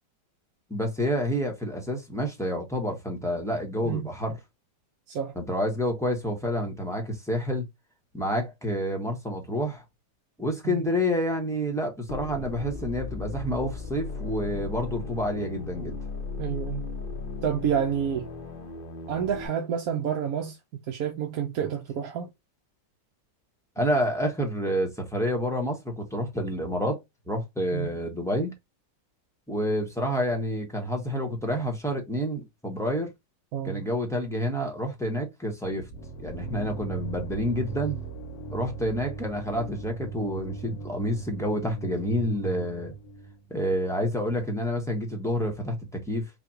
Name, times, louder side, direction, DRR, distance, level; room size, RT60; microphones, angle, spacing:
voice 1, 0.7-4.4 5.4-7.7 8.1-9.8 10.4-16.0 23.8-28.5 29.5-33.1 33.6-35.9 36.2-38.0 38.5-42.9 43.5-46.3, equal, ahead, 0.7 m, -28 dB
sound 1, 12.1-19.5, left 4 dB, 40° left, 0.8 m, -36 dB
voice 2, 16.4-16.9 17.4-18.3 19.1-20.6 20.9-22.3 27.7-27.9 33.5-33.8, right 8 dB, 65° right, 1.1 m, -29 dB
sound 2, 35.6-43.5, right 5 dB, 85° left, 1.5 m, -38 dB
4.8 x 2.3 x 2.9 m
omnidirectional pair, 1.9 m